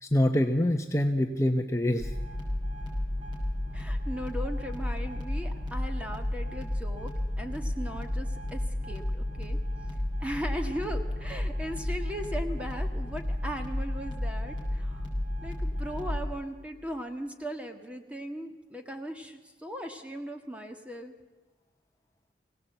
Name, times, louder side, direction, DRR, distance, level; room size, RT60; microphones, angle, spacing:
voice 1, 0.0-2.1, left 1 dB, 15° left, 3 dB, 0.8 m, -25 dB
sound 1, 2.0-16.3, left 1 dB, 25° right, 5.4 m, -32 dB
voice 2, 3.7-7.1 7.4-9.6 10.2-15.1 15.4-21.1, equal, 5° right, 5 dB, 1.6 m, -38 dB
25.0 x 17.0 x 7.9 m, 1.2 s
head